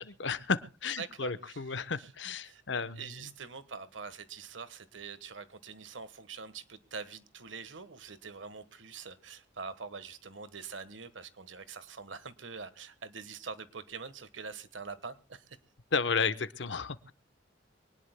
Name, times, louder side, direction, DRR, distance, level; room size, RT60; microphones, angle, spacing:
voice 1, 0.0-3.3 15.9-17.1, left 5 dB, 70° left, 13 dB, 0.9 m, -33 dB
voice 2, 1.0-2.1 2.4-15.6, right 5 dB, 90° right, 13 dB, 1.3 m, -44 dB
24.0 x 19.0 x 2.2 m, 0.33 s
head